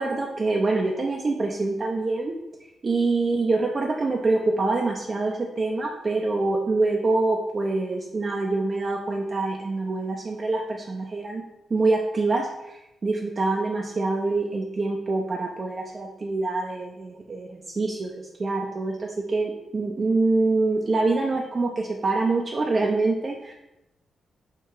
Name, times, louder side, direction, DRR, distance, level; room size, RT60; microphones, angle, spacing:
voice 1, 0.0-2.3 2.8-11.4 11.7-18.1 18.4-23.5, right 3 dB, 40° right, 0 dB, 0.5 m, -25 dB
4.6 x 2.4 x 4.6 m, 0.92 s
cardioid pair, 85°, 0 cm